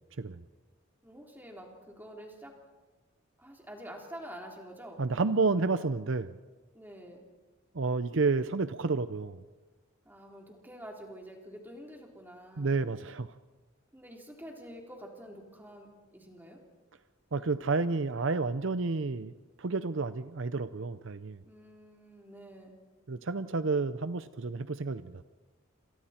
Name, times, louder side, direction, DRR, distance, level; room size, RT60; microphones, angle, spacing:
voice 1, 1.0-2.5 3.4-5.0 6.7-7.3 10.1-12.7 13.9-16.6 21.4-22.8, equal, 10° right, 0 dB, 3.6 m, -47 dB
voice 2, 5.0-6.4 7.7-9.4 12.6-13.3 17.3-19.3 19.6-21.4 23.1-25.2, right 3 dB, 60° right, 12 dB, 0.7 m, -30 dB
28.5 x 27.0 x 4.4 m, 1.3 s
head